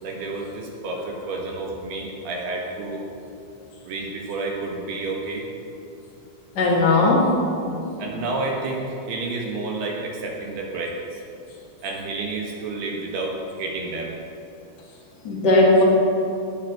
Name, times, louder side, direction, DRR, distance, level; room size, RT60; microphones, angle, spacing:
voice 1, 0.0-3.0 3.8-5.5 8.0-11.2 11.8-14.1, right 3 dB, 65° right, -1 dB, 2.9 m, -30 dB
voice 2, 6.5-7.8 15.2-15.8, left 2 dB, 85° left, -4 dB, 0.9 m, -18 dB
18.5 x 8.7 x 5.9 m, 2.7 s
omnidirectional pair, 5.8 m